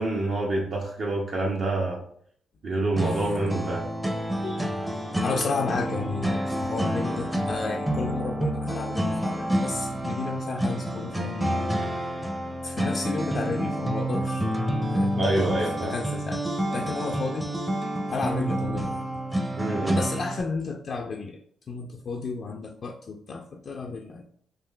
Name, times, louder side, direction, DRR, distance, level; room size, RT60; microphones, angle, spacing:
voice 1, 0.0-2.0 2.6-3.9 15.2-15.9 19.5-20.0, right 2 dB, 60° right, -3 dB, 0.6 m, -27 dB
voice 2, 3.0-3.3 4.4-4.7 5.2-12.2 12.6-14.4 14.9-15.5 15.8-16.4 16.7-17.5 18.1-19.1 20.0-21.4 21.7-24.2, left 4 dB, 55° left, 1 dB, 0.3 m, -33 dB
sound 1, 3.0-20.4, equal, 10° right, 0.5 m, -28 dB
3.6 x 2.5 x 2.2 m, 0.63 s
supercardioid pair, 60°, 0 cm